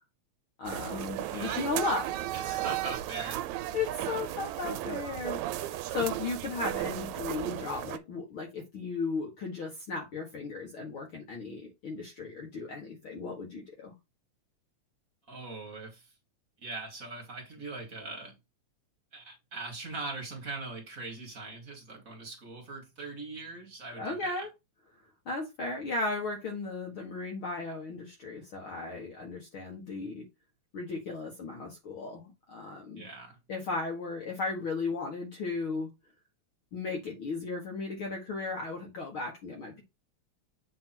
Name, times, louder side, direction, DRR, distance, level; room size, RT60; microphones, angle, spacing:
voice 1, 0.6-2.7 3.7-14.0 24.0-24.5 25.3-30.3 30.7-33.1 33.5-35.9 36.7-39.8, left 3 dB, 50° left, 2.0 m, -36 dB
sound 1, 0.7-8.0, right 14 dB, 80° right, 1.9 m, -35 dB
voice 2, 1.3-1.9 2.3-3.5 15.3-16.1 16.6-18.4 19.1-24.5 32.9-33.4, right 3 dB, 30° right, 2.2 m, -41 dB
7.8 x 3.5 x 4.5 m
omnidirectional pair, 3.4 m